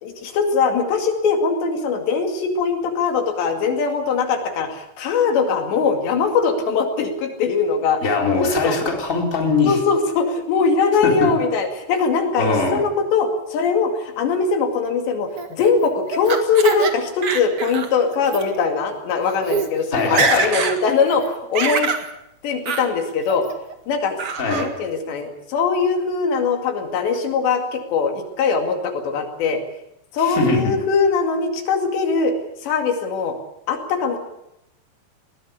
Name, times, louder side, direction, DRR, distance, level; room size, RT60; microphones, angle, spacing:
voice 1, 0.0-8.0 8.4-8.8 9.6-21.9 22.4-23.5 23.9-24.2 24.5-29.6 30.1-32.3 32.6-33.4 33.7-34.2, left 5 dB, 75° left, 5 dB, 4.6 m, -21 dB
voice 2, 8.0-9.8 11.0-11.3 12.4-12.8 19.9-20.6 24.4-24.7 30.2-30.7, left 3 dB, 20° left, 1 dB, 3.9 m, -21 dB
Laughter, 15.4-16.9 17.2-17.9 18.3-18.4 19.1-19.2 19.4-19.7 20.0-20.8 21.1-22.1 22.7-22.9 23.3-23.7 24.2-24.7, right 6 dB, 45° right, 1.9 m, -24 dB
21.0 x 18.0 x 8.3 m, 0.82 s
omnidirectional pair, 5.0 m